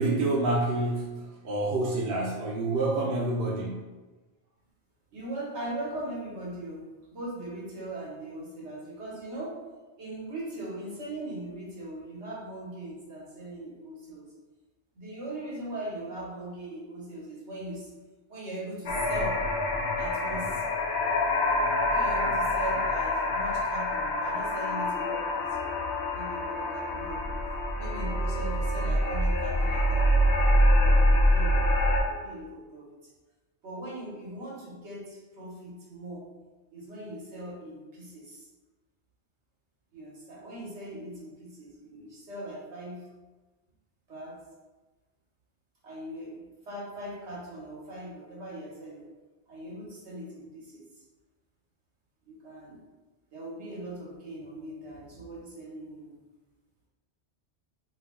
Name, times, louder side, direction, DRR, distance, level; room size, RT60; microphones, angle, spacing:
voice 1, 0.0-3.9, right 2 dB, 65° right, -4 dB, 0.7 m, -28 dB
voice 2, 5.1-9.6 10.0-14.3 14.9-17.9 18.3-19.4 20.0-20.6 21.9-25.7 26.1-27.3 27.8-30.2 30.8-32.9 33.6-36.3 36.7-38.5 39.9-43.0 44.1-44.4 45.8-49.0 49.5-50.8 52.2-52.8 53.3-56.2, right 1 dB, 85° right, -4 dB, 1.3 m, -40 dB
sound 1, 18.9-32.0, left 1 dB, 80° left, 0.9 m, -25 dB
2.8 x 2.6 x 3.7 m, 1.2 s
omnidirectional pair, 1.1 m